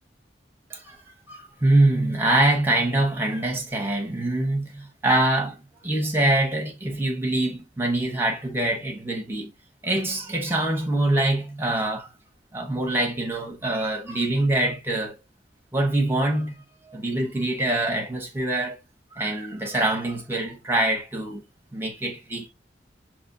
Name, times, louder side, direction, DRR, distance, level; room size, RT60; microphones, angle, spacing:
voice 1, 0.7-1.0 1.3-5.6 5.8-9.5 9.8-12.1 12.5-15.2 15.7-16.5 16.9-18.8 19.1-21.4 21.7-22.5, right 1 dB, 15° right, 1.2 m, -24 dB
6.2 x 3.0 x 2.7 m
head